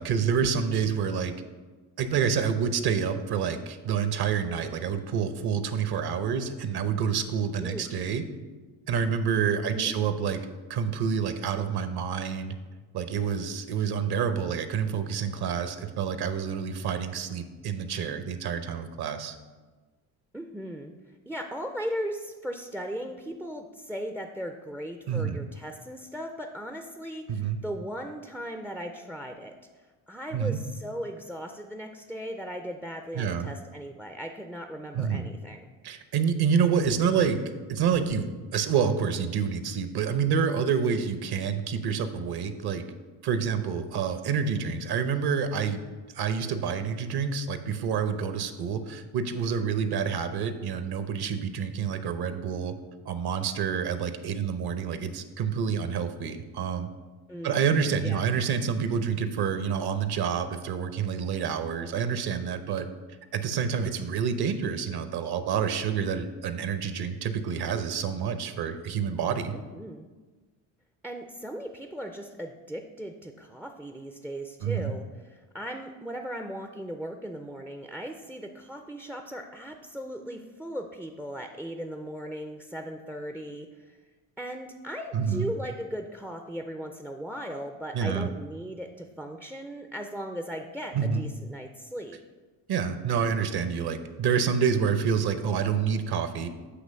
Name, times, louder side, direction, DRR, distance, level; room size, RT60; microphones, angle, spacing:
voice 1, 0.0-1.3 2.0-8.2 8.9-10.4 10.7-12.5 12.9-19.4 25.1-25.4 27.3-27.6 30.3-30.6 33.1-33.5 34.9-35.2 35.8-37.4 37.7-42.8 43.2-45.8 46.1-52.7 53.1-56.9 57.4-62.9 63.3-69.5 74.6-74.9 85.1-85.5 87.9-88.3 90.9-91.2 92.7-96.5, right 7 dB, 55° right, 9 dB, 0.8 m, -28 dB
voice 2, 7.6-7.9 9.6-10.0 20.3-35.6 46.3-46.6 57.3-57.7 58.0-58.2 69.5-70.1 71.0-84.0 84.4-92.2, equal, 5° right, 5 dB, 0.3 m, -38 dB
8.0 x 3.1 x 6.3 m, 1.3 s
supercardioid pair, 70°, 46 cm